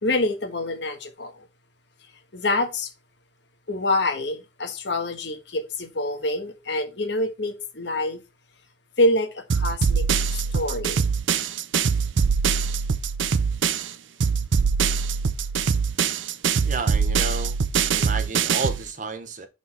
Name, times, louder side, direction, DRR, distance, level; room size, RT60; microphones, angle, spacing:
voice 1, 0.0-1.4 2.3-2.9 3.7-8.2 9.0-10.0 10.3-11.0, left 2 dB, 70° left, 1.3 m, -26 dB
sound 1, 9.5-13.9 14.2-18.8, right 6 dB, 80° right, 0.5 m, -23 dB
voice 2, 16.6-17.6 17.9-19.5, right 3 dB, 40° right, 0.9 m, -31 dB
5.8 x 4.0 x 4.7 m
head